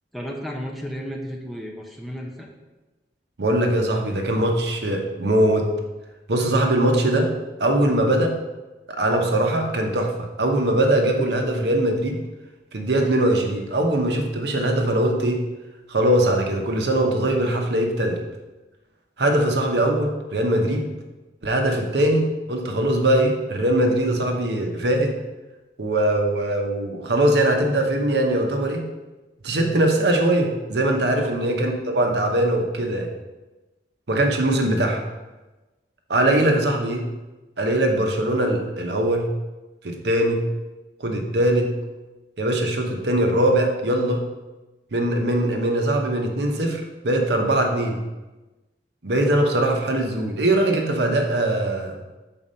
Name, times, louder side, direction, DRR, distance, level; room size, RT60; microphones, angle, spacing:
voice 1, 0.1-2.5 31.1-31.4, equal, ahead, -1 dB, 0.7 m, -33 dB
voice 2, 3.4-5.7 6.3-7.3 7.6-8.4 8.9-12.2 12.7-15.4 15.9-18.2 19.2-20.9 21.4-25.1 25.8-28.9 29.4-33.1 34.1-35.0 36.1-37.0 37.6-39.3 39.8-40.4 41.0-41.7 42.4-44.2 44.9-48.0 49.0-52.0, right 1 dB, 70° right, 3 dB, 0.9 m, -21 dB
5.9 x 4.2 x 5.1 m, 1.1 s
head